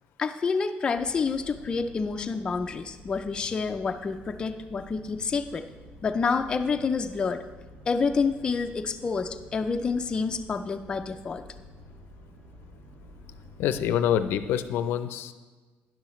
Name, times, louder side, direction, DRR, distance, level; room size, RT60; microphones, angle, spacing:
voice 1, 0.2-5.6 6.0-7.4 7.9-11.4, left 5 dB, 20° left, 6 dB, 0.4 m, -28 dB
sound 1, 0.9-14.6, left 1 dB, 90° right, 1.6 m, -49 dB
voice 2, 13.6-15.3, left 9 dB, 75° left, 11 dB, 0.5 m, -26 dB
12.0 x 10.5 x 3.1 m, 1.3 s
cardioid pair, 170°, 4 cm